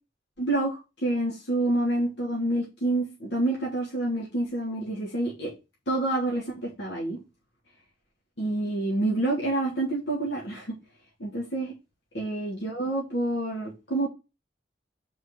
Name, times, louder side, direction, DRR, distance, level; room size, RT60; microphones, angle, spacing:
voice 1, 0.4-5.5 5.9-7.2 8.4-10.7 11.2-11.7 12.1-14.1, right 2 dB, 80° left, -4 dB, 3.1 m, -28 dB
5.3 x 4.9 x 5.9 m, 0.26 s
head